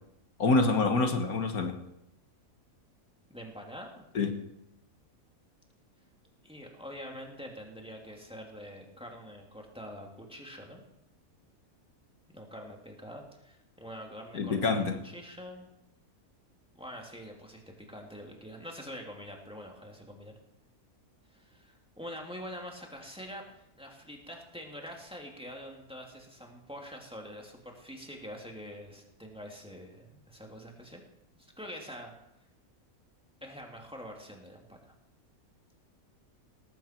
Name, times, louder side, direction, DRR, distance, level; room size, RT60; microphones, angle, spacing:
voice 1, 0.4-1.8 4.2-4.4 14.3-15.0, left 3 dB, 85° left, 5 dB, 2.0 m, -26 dB
voice 2, 3.3-4.0 6.4-10.8 12.3-15.7 16.7-20.4 21.3-23.4 23.8-31.0 31.4-32.1 33.4-34.9, equal, 5° right, 0 dB, 2.7 m, -45 dB
18.5 x 15.0 x 4.6 m, 0.83 s
omnidirectional pair, 1.5 m